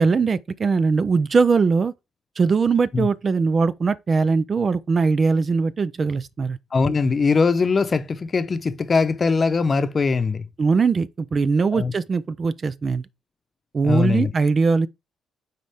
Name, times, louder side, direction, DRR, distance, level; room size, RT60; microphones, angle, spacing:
voice 1, 0.0-1.9 2.4-6.6 10.6-13.0 13.7-14.9, right 4 dB, 40° right, 0.4 m, -20 dB
voice 2, 6.7-10.5 11.7-11.9 13.8-14.3, left 4 dB, 35° left, 0.8 m, -21 dB
7.4 x 4.2 x 3.5 m
cardioid pair, 90°, 0 cm